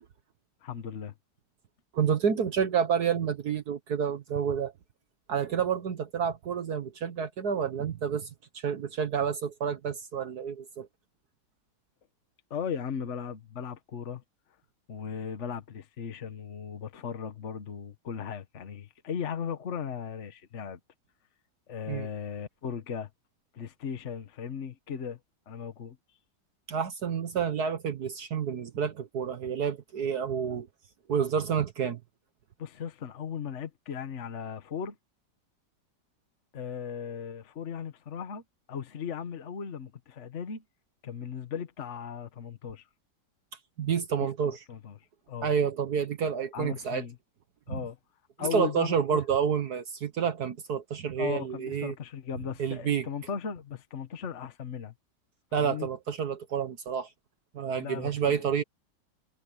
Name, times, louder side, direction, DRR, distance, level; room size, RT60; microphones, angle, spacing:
voice 1, 0.6-1.1 12.5-14.2 14.9-20.8 21.7-23.1 23.5-25.2 25.5-26.0 32.6-34.9 36.5-38.4 38.7-40.6 41.0-42.8 44.4-45.0 45.3-45.5 46.5-47.2 47.7-48.0 48.4-49.2 51.2-54.9 55.6-55.9 57.8-58.3, left 7 dB, 45° left, 1.5 m, -37 dB
voice 2, 1.9-4.7 5.3-10.9 21.9-22.1 26.7-30.7 31.1-32.0 43.8-44.6 45.4-47.0 47.7-47.8 48.4-51.9 52.6-53.1 55.5-57.1 57.5-58.6, right 7 dB, 60° right, 1.6 m, -29 dB
omnidirectional pair, 1.9 m